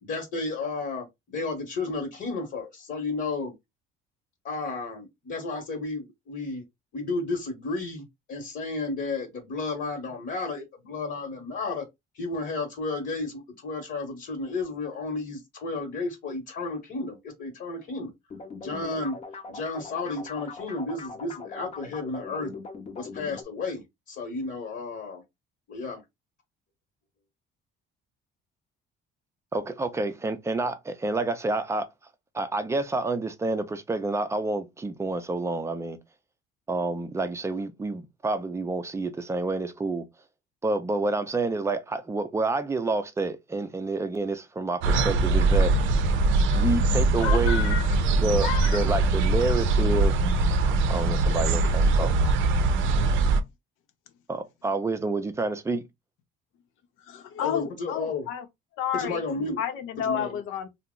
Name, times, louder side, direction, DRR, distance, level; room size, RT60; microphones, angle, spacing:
voice 1, 0.0-3.5 4.4-6.6 6.9-11.8 12.1-18.1 18.6-19.2 19.5-22.5 22.9-25.2 25.7-26.0 57.4-58.3 58.9-59.6 60.0-60.4, left 3 dB, 50° left, 1.0 m, -32 dB
sound 1, 18.3-23.4, left 4 dB, 30° left, 0.7 m, -41 dB
voice 2, 29.5-31.9 32.3-36.0 36.7-40.1 40.6-45.8 46.5-47.7 48.2-50.1 50.9-52.1 54.3-55.9, right 3 dB, 15° right, 0.4 m, -28 dB
sound 2, 44.8-53.4, right 3 dB, 75° right, 0.5 m, -22 dB
voice 3, 47.2-48.0 48.4-48.9 51.4-51.6 51.8-52.0 52.2-52.3 57.0-58.5 58.8-60.7, left 9 dB, 90° left, 0.7 m, -32 dB
2.8 x 2.0 x 3.6 m
cardioid pair, 135°, 21 cm